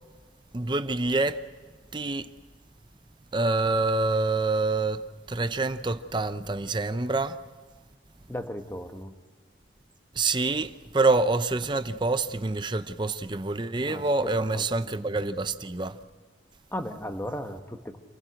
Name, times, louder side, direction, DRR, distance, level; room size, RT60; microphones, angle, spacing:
voice 1, 0.5-1.4 1.9-2.3 3.3-7.4 10.1-16.0, right 3 dB, 25° right, 0.7 m, -26 dB
voice 2, 8.3-9.1 13.8-14.1 14.5-15.0 16.7-18.0, equal, 15° left, 1.2 m, -36 dB
27.5 x 16.0 x 7.8 m
head